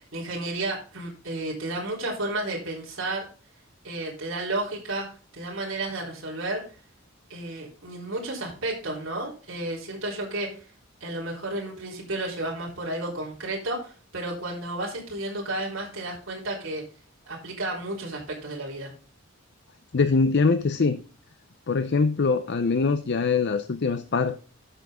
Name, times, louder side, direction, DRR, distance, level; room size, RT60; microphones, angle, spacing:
voice 1, 0.1-3.3 3.8-5.1 5.3-6.6 7.3-10.6 11.0-16.8 17.3-18.9, right 2 dB, 70° right, -4 dB, 3.6 m, -32 dB
voice 2, 19.9-21.0 21.7-24.4, left 4 dB, 55° left, 10 dB, 0.6 m, -23 dB
12.5 x 5.9 x 3.6 m, 0.37 s
head